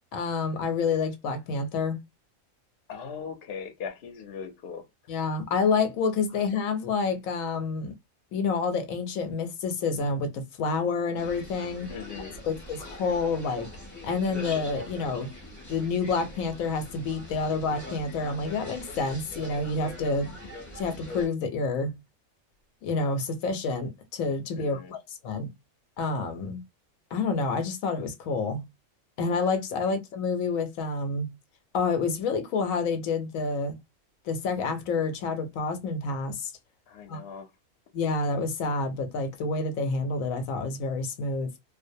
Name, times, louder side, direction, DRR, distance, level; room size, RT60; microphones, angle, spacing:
voice 1, 0.1-2.0 5.1-7.9 8.3-11.9 12.4-13.7 14.0-15.3 15.7-20.3 20.7-22.0 22.8-25.0 25.2-25.5 26.0-26.6 27.1-28.7 29.2-31.3 31.7-33.8 34.3-36.5 37.1-37.2 37.9-41.5, left 4 dB, 85° left, 1.0 m, -28 dB
voice 2, 2.9-4.8 11.9-12.3 24.6-24.9 36.9-37.5, left 6 dB, 55° left, 0.8 m, -39 dB
sound 1, 11.2-21.3, left 1 dB, 15° left, 0.8 m, -43 dB
2.4 x 2.0 x 2.5 m
omnidirectional pair, 1.4 m